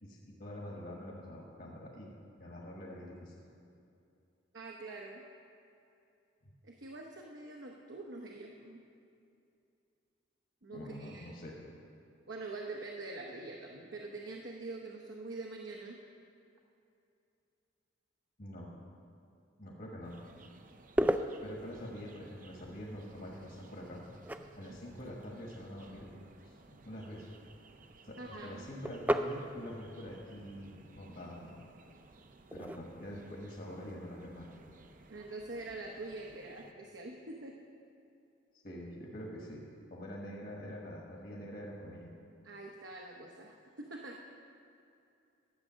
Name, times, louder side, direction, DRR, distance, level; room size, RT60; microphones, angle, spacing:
voice 1, 0.0-3.3 10.7-11.7 18.4-18.7 19.6-20.2 21.4-24.0 24.6-26.1 26.4-26.5 26.8-27.2 28.0-31.6 32.5-34.6 38.6-42.1, equal, 50° left, -3 dB, 1.4 m, -45 dB
voice 2, 4.5-5.2 6.6-8.8 10.6-11.4 12.3-16.0 24.6-24.8 28.2-28.7 35.1-37.6 42.4-44.2, right 2 dB, 70° right, 0 dB, 0.9 m, -45 dB
sound 1, 20.0-36.7, right 3 dB, 45° right, 0.6 m, -59 dB
sound 2, 20.1-35.2, right 1 dB, 10° right, 0.3 m, -40 dB
12.0 x 8.0 x 6.2 m, 2.6 s
head